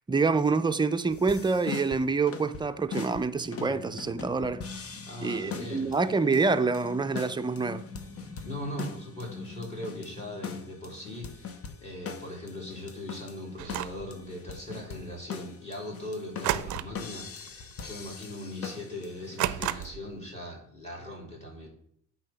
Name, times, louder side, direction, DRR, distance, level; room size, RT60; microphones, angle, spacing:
voice 1, 0.1-4.9 5.2-7.9, right 4 dB, 15° right, 0.5 m, -27 dB
sound 1, 1.1-19.9, left 6 dB, 50° left, 1.0 m, -42 dB
sound 2, 3.3-10.7, left 3 dB, 85° left, 1.5 m, -45 dB
voice 2, 5.0-5.9 8.4-11.6 11.8-21.7, left 1 dB, 20° left, 3.1 m, -40 dB
sound 3, 13.6-14.1 16.4-17.1 17.4-17.7 18.1-18.2 19.4-20.1, right 14 dB, 75° right, 0.5 m, -31 dB
8.7 x 4.2 x 5.7 m
cardioid pair, 90°, 30 cm